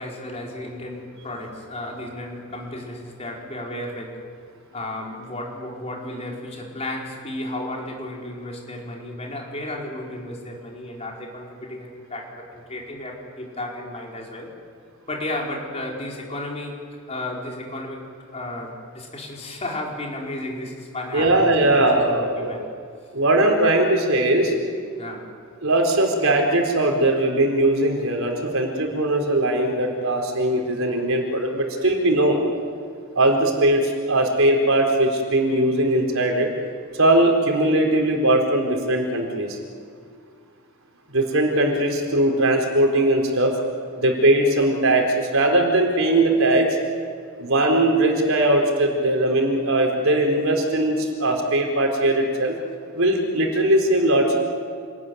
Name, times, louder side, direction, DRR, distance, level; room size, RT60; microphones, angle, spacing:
voice 1, 0.0-4.2 4.7-14.5 15.1-16.8 17.1-18.0 18.3-22.6 25.0-25.3, left 1 dB, 30° left, -1 dB, 4.8 m, -33 dB
voice 2, 21.1-22.5 23.1-24.5 25.6-32.4 33.1-36.5 36.9-39.6 41.1-43.5 43.9-46.7 47.4-52.6 52.9-54.4, right 1 dB, 65° right, 2 dB, 4.3 m, -20 dB
28.0 x 21.0 x 9.5 m, 2.1 s
head